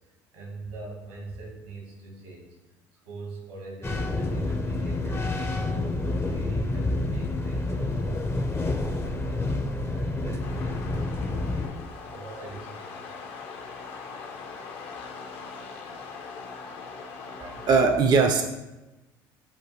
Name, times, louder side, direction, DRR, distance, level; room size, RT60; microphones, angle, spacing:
voice 1, 0.3-2.5 3.0-5.5 6.0-12.9 15.8-16.1, right 3 dB, 85° right, -2 dB, 1.4 m, -42 dB
sound 1, 3.8-11.7, left 2 dB, 20° left, 0.5 m, -28 dB
sound 2, 10.4-17.9, left 4 dB, 60° left, 0.6 m, -41 dB
voice 2, 17.4-18.4, right 4 dB, 35° right, 6 dB, 0.4 m, -20 dB
5.7 x 2.5 x 3.0 m, 1.0 s
hypercardioid pair, 70°, 12 cm